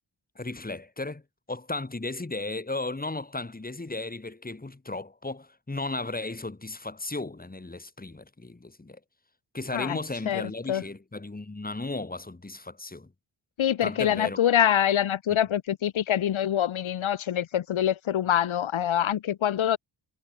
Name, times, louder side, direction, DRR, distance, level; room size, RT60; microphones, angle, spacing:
voice 1, 0.4-1.2 1.5-9.0 9.5-13.1 13.8-14.4 15.3-15.4, left 2 dB, 20° left, 4.5 m, -35 dB
voice 2, 13.6-19.8, left 10 dB, 90° left, 1.2 m, -25 dB
wide cardioid pair, 170°, 46 cm